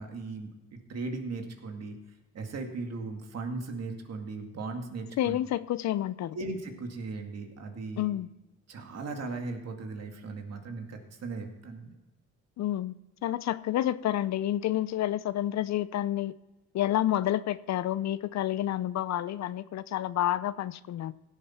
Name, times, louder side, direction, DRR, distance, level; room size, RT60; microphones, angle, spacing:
voice 1, 0.0-2.0 2.3-5.4 6.3-8.1 8.7-12.0, right 3 dB, 55° right, 2.2 m, -38 dB
voice 2, 5.2-6.4 8.0-8.3 12.6-12.9 13.2-16.3 16.7-21.1, left 13 dB, 65° left, 0.6 m, -29 dB
16.5 x 7.6 x 4.4 m
cardioid pair, 90°, 30 cm